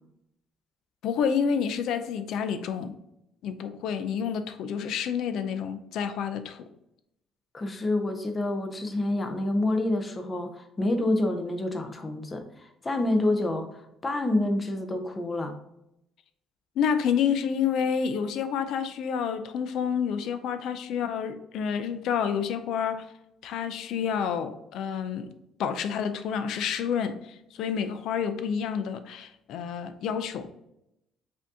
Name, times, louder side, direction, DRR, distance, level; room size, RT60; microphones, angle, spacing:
voice 1, 1.0-3.0 3.4-6.7 16.8-23.1 23.4-25.3 25.6-27.2 27.6-30.5, left 7 dB, 70° left, 10 dB, 0.4 m, -29 dB
voice 2, 7.5-15.6, left 1 dB, 20° left, 6 dB, 0.6 m, -28 dB
5.0 x 2.7 x 3.6 m, 0.83 s
cardioid pair, 130°, 0 cm